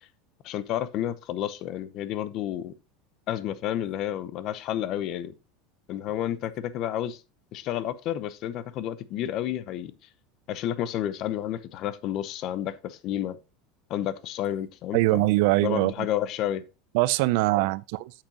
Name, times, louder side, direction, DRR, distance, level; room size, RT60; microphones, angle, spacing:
voice 1, 0.4-2.7 3.3-5.4 5.9-7.2 7.5-9.9 10.5-13.4 13.9-15.3 15.6-16.6, left 11 dB, 45° left, 0.7 m, -30 dB
voice 2, 14.9-16.1 16.9-18.1, right 19 dB, 65° right, 0.4 m, -23 dB
8.7 x 7.5 x 2.9 m
supercardioid pair, 155°, 0 cm